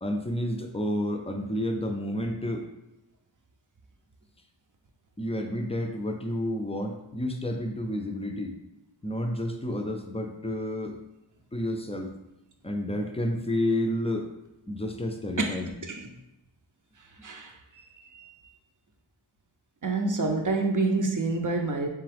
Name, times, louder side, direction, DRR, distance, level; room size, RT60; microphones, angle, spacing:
voice 1, 0.0-2.6 5.2-8.5 9.0-11.0 11.5-12.1 12.6-14.3 14.7-15.7, left 1 dB, 15° left, 4 dB, 0.5 m, -30 dB
voice 2, 17.2-17.8 18.1-18.3 19.8-21.9, right 3 dB, 40° right, 3 dB, 0.6 m, -27 dB
3.6 x 3.3 x 3.4 m, 0.93 s
wide cardioid pair, 50°, 48 cm